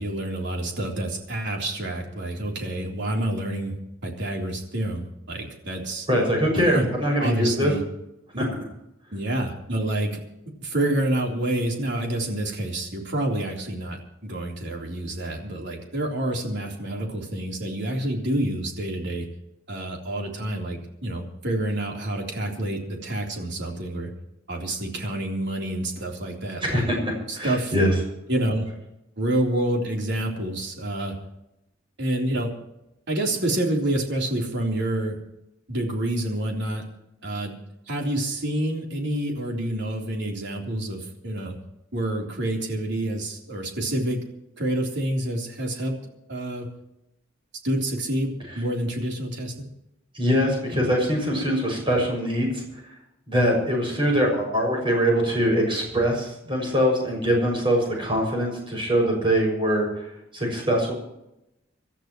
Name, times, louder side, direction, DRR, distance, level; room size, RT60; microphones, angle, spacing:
voice 1, 0.0-3.7 4.0-6.1 6.7-6.8 7.2-7.8 8.3-8.4 9.1-10.2 10.6-19.3 19.7-24.1 24.5-26.8 27.3-27.7 28.3-28.7 29.2-31.1 32.0-32.5 33.1-35.2 35.7-36.8 37.2-37.6 37.9-41.6 41.9-44.2 44.6-46.7 47.6-49.5, right 1 dB, 60° right, 0 dB, 3.7 m, -28 dB
voice 2, 6.1-7.7 8.4-8.5 26.6-27.0 27.3-27.9 50.1-52.6 53.3-60.9, equal, 25° right, 0 dB, 6.6 m, -23 dB
27.0 x 13.0 x 3.1 m, 0.86 s
head